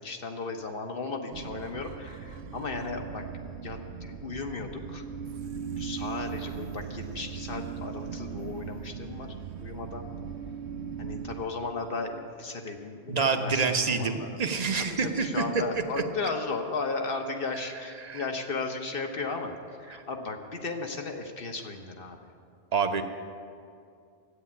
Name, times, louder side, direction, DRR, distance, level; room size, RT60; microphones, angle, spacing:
voice 1, 0.0-3.2 3.6-5.0 5.6-9.3 9.6-10.1 11.0-14.3 14.9-22.2, left 3 dB, 60° left, 4 dB, 1.4 m, -35 dB
sound 1, 1.3-11.4, right 7 dB, 85° right, 1.0 m, -39 dB
voice 2, 13.1-15.4 18.0-18.2 19.9-20.0 22.7-23.0, right 5 dB, 40° right, 5 dB, 0.9 m, -27 dB
13.5 x 9.2 x 8.4 m, 2.3 s
omnidirectional pair, 1.1 m